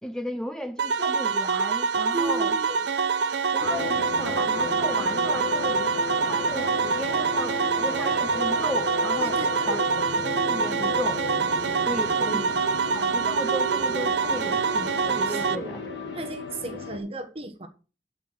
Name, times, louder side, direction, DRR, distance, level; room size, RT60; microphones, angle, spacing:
voice 1, 0.0-2.6 3.5-9.8 10.1-11.3 11.8-12.6 12.9-15.8, equal, 5° left, 0.5 m, -35 dB
sound 1, 0.8-15.6, right 5 dB, 75° right, 0.7 m, -25 dB
voice 2, 2.1-2.9 9.2-9.9 12.1-12.5 15.3-15.8 16.1-17.7, right 2 dB, 35° right, 1.2 m, -34 dB
sound 2, 3.6-17.0, left 2 dB, 75° left, 1.4 m, -33 dB
11.5 x 4.7 x 6.1 m
head